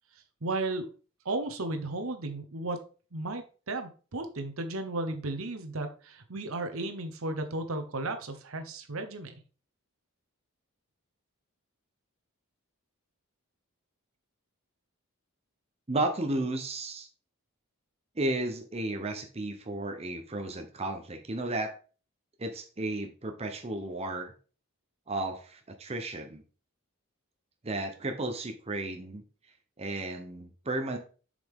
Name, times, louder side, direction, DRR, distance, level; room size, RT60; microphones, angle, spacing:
voice 1, 0.4-0.9 1.2-2.8 3.1-9.4, right 2 dB, 70° right, 7 dB, 0.9 m, -34 dB
voice 2, 15.9-17.1 18.2-21.7 22.4-24.3 25.1-26.4 27.6-29.2 29.8-31.0, right 2 dB, 30° right, 4 dB, 0.8 m, -33 dB
6.9 x 5.1 x 3.6 m, 0.37 s
head